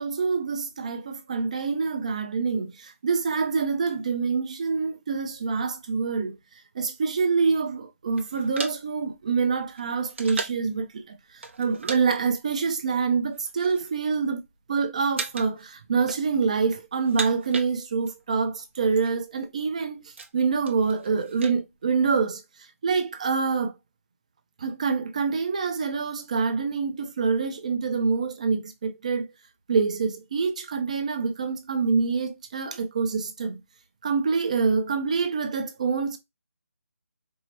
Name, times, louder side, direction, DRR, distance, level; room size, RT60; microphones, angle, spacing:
voice 1, 0.0-6.4 6.7-11.1 11.6-14.4 14.7-22.4 22.8-23.8 24.6-29.3 29.7-33.6 34.0-36.2, right 5 dB, 25° right, 0.5 m, -26 dB
sound 1, 8.2-10.7 11.4-12.0 12.3-12.5 13.2-13.9 14.3-14.7 15.1-15.6 15.9-16.6 16.9-18.2 18.5-18.6 18.8-19.1 19.6-21.6, right 4 dB, 50° right, 0.8 m, -37 dB
4.6 x 2.0 x 2.7 m
hypercardioid pair, 170°, 8 cm